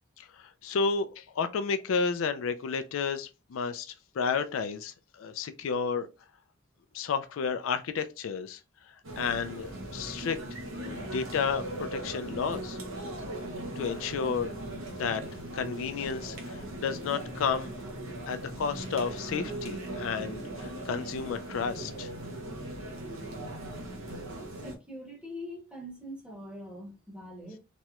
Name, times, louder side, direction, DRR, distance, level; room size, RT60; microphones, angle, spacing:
voice 1, 0.2-3.9 4.1-6.1 6.9-8.6 9.2-12.8 13.8-14.5 15.0-15.2 15.5-17.8 18.3-22.1, left 5 dB, 75° left, 0.4 m, -32 dB
sound 1, 9.0-24.8, right 1 dB, 80° right, 0.8 m, -39 dB
voice 2, 24.6-27.6, equal, 5° right, 0.9 m, -43 dB
3.0 x 2.9 x 2.2 m
head